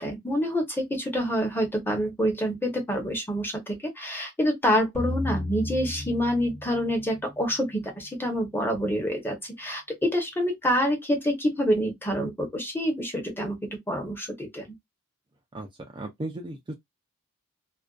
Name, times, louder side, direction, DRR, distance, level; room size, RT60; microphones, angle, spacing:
voice 1, 0.0-13.6 13.9-14.6, equal, 10° left, 0.7 m, -27 dB
sound 1, 4.9-8.1, left 2 dB, 35° left, 1.0 m, -35 dB
voice 2, 15.9-16.7, right 1 dB, 20° right, 0.4 m, -35 dB
2.4 x 2.2 x 2.3 m
head